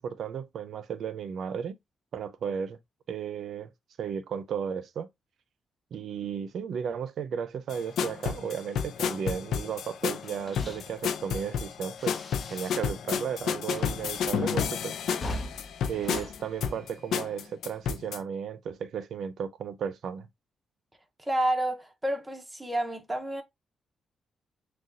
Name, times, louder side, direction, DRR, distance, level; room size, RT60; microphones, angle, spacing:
voice 1, 0.0-1.8 2.1-2.8 3.1-3.7 4.0-5.1 5.9-12.2 12.5-15.0 15.9-20.3, right 7 dB, 70° right, 0.6 m, -34 dB
sound 1, 7.7-18.2, left 7 dB, 80° left, 0.5 m, -31 dB
sound 2, 10.1-13.1 13.3-17.2, left 1 dB, 40° left, 0.9 m, -42 dB
voice 2, 21.2-23.4, right 1 dB, 10° right, 0.9 m, -29 dB
6.3 x 2.3 x 2.6 m
cardioid pair, 90°, 0 cm